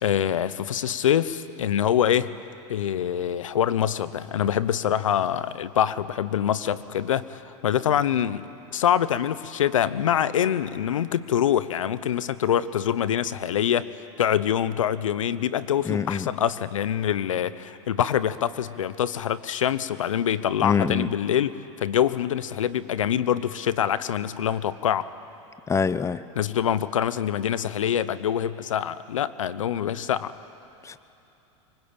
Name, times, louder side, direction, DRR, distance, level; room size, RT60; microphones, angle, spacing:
voice 1, 0.0-2.3 2.7-13.9 14.2-25.1 26.4-30.3, left 10 dB, 90° left, 15 dB, 0.9 m, -25 dB
voice 2, 15.9-16.3 20.6-21.1 25.7-26.2 30.8-31.0, left 6 dB, 20° left, 15 dB, 0.9 m, -25 dB
24.5 x 23.5 x 8.9 m, 2.9 s
hypercardioid pair, 105°, 16 cm